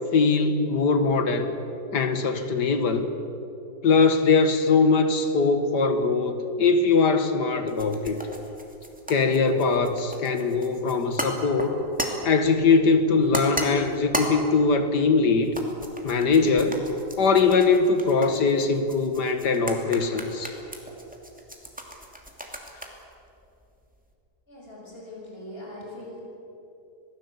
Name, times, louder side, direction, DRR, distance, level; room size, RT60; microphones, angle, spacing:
voice 1, 0.1-1.5 1.9-3.1 3.8-8.2 9.1-11.8 12.2-15.5 16.0-16.8 17.2-20.5, left 4 dB, 85° left, 8 dB, 2.1 m, -21 dB
sound 1, 7.7-24.1, equal, 5° right, 2.7 m, -36 dB
voice 2, 24.5-26.2, left 1 dB, 35° left, -3 dB, 6.4 m, -41 dB
26.0 x 18.0 x 8.2 m, 2.8 s
omnidirectional pair, 1.7 m